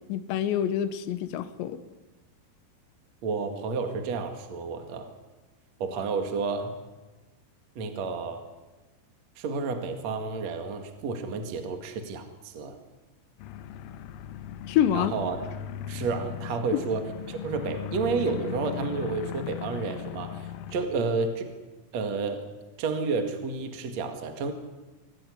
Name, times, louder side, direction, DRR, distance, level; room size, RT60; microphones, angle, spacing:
voice 1, 0.1-1.8 14.7-15.1, left 10 dB, 70° left, 12 dB, 3.1 m, -26 dB
voice 2, 3.2-5.1 5.8-6.7 7.8-8.4 9.4-12.8 14.9-15.5 15.9-21.5 21.9-22.5 22.8-24.5, right 4 dB, 50° right, 6 dB, 2.3 m, -31 dB
sound 1, 13.4-20.9, left 9 dB, 90° left, 3.7 m, -38 dB
25.0 x 16.0 x 9.9 m, 1.1 s
omnidirectional pair, 5.8 m